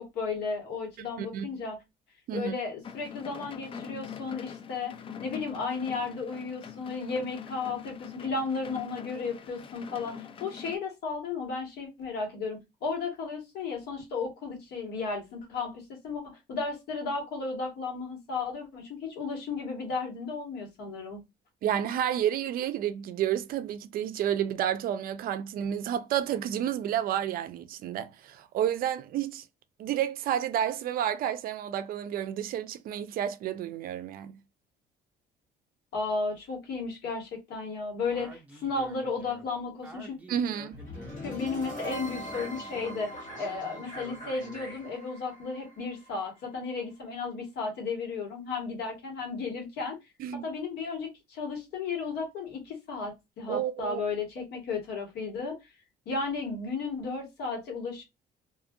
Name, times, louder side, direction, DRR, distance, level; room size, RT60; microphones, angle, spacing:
voice 1, 0.0-1.8 2.3-21.2 35.9-40.2 41.2-50.0 50.3-55.6 56.0-58.0, left 4 dB, 75° left, 1.4 m, -34 dB
sound 1, 2.8-10.8, left 7 dB, 30° left, 0.3 m, -44 dB
voice 2, 21.6-29.5 29.8-34.3 40.3-40.8 50.2-50.4 53.5-54.0, right 10 dB, 60° right, 0.4 m, -30 dB
Speech, 38.1-44.8, right 1 dB, 10° right, 0.7 m, -50 dB
sound 2, 40.7-46.8, equal, 50° left, 1.3 m, -41 dB
2.6 x 2.4 x 2.6 m
cardioid pair, 110°, 17 cm